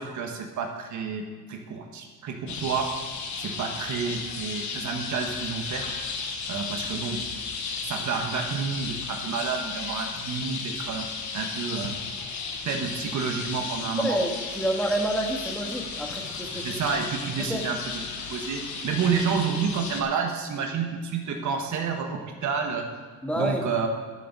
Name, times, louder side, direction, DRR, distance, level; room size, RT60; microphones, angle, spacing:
voice 1, 0.0-2.9 3.4-5.8 6.5-7.2 7.8-11.1 11.3-11.9 12.6-14.2 16.5-18.0 18.3-22.9 23.4-23.9, right 6 dB, 70° right, 3 dB, 1.5 m, -29 dB
sound 1, 2.5-20.0, left 5 dB, 70° left, 1.5 m, -34 dB
voice 2, 14.0-16.8 17.4-17.6 23.2-23.7, right 1 dB, 5° left, 1 dB, 1.8 m, -28 dB
12.0 x 6.7 x 6.1 m, 1.5 s
cardioid pair, 90°, 30 cm